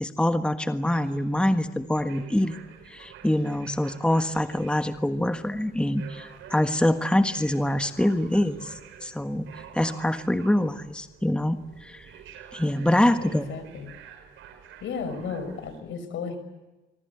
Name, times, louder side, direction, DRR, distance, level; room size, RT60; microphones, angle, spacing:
voice 1, 0.0-2.6 2.9-12.1 12.5-13.5, left 1 dB, 5° left, 8 dB, 1.5 m, -25 dB
sound 1, 0.7-15.8, right 8 dB, 90° right, 5.2 m, -48 dB
voice 2, 13.2-13.9 14.8-16.4, left 5 dB, 75° left, 10 dB, 5.9 m, -34 dB
25.5 x 23.5 x 8.4 m, 1.1 s
cardioid pair, 90°, 20 cm